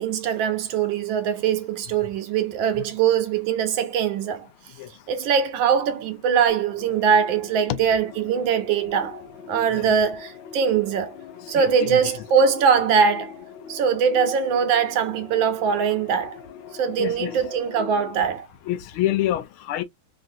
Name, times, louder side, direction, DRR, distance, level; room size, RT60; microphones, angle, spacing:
voice 1, 0.0-4.5 5.1-9.2 9.5-11.2 11.5-13.3 13.7-16.4 16.8-18.5, right 7 dB, 75° right, 1.2 m, -22 dB
sound 1, 6.5-18.4, left 6 dB, 55° left, 0.8 m, -42 dB
voice 2, 11.5-12.2 17.0-17.4 18.7-19.8, left 13 dB, 80° left, 1.4 m, -27 dB
3.5 x 2.4 x 2.5 m
omnidirectional pair, 2.3 m